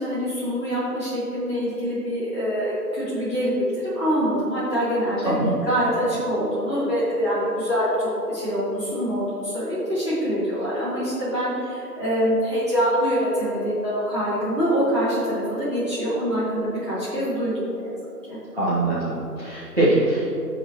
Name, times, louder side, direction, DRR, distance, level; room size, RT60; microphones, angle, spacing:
voice 1, 0.0-5.3 5.6-17.9 18.2-18.4, equal, 15° right, -13 dB, 2.0 m, -25 dB
voice 2, 18.5-20.3, right 1 dB, 35° right, -10 dB, 1.4 m, -22 dB
14.0 x 5.4 x 3.0 m, 2.8 s
figure-of-eight pair, 175°, 49 cm